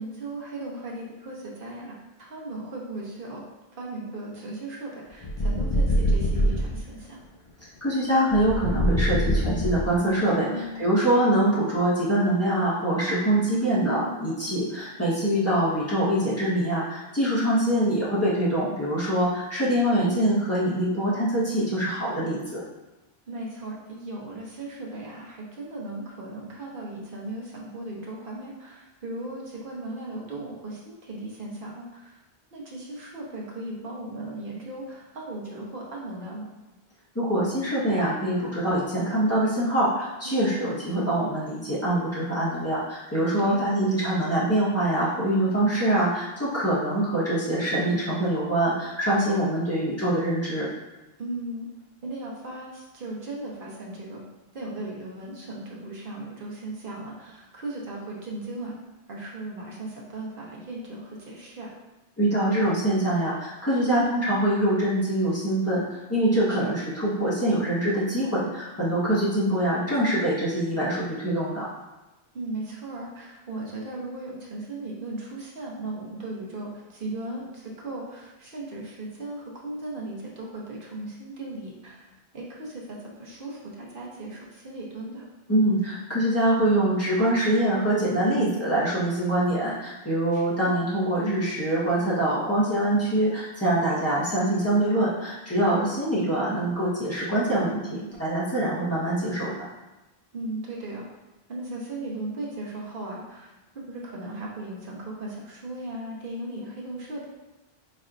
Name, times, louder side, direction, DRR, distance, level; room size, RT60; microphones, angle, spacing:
voice 1, 0.0-3.4 3.7-7.2 10.5-10.8 13.6-14.3 23.3-32.2 32.5-36.5 40.2-40.6 43.4-43.8 51.2-51.7 52.0-54.2 54.5-58.8 59.1-61.7 63.8-64.1 66.5-66.7 72.3-85.3 88.3-88.7 90.3-90.8 100.3-101.0 101.5-107.3, right 2 dB, 60° right, -3 dB, 1.0 m, -37 dB
sound 1, 5.2-6.8 8.3-10.1, equal, 55° left, 0.4 m, -24 dB
voice 2, 7.8-10.5 10.8-22.6 37.1-50.7 62.2-71.7 85.5-99.7, right 1 dB, 15° left, -9 dB, 1.2 m, -24 dB
4.1 x 3.2 x 2.5 m, 1.1 s
omnidirectional pair, 1.0 m